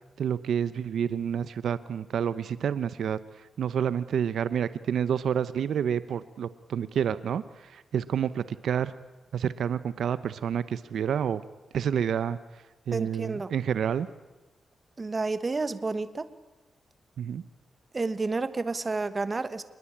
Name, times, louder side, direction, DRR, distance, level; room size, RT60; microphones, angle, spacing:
voice 1, 0.2-3.2 3.6-8.9 9.3-11.4 11.7-12.4 12.9-14.1 17.2-17.4, right 8 dB, 75° right, 15 dB, 0.8 m, -29 dB
voice 2, 12.9-13.5 15.0-16.3 17.9-19.6, right 3 dB, 25° right, 13 dB, 1.2 m, -30 dB
26.5 x 21.0 x 8.7 m, 1.1 s
wide cardioid pair, 135°, 0 cm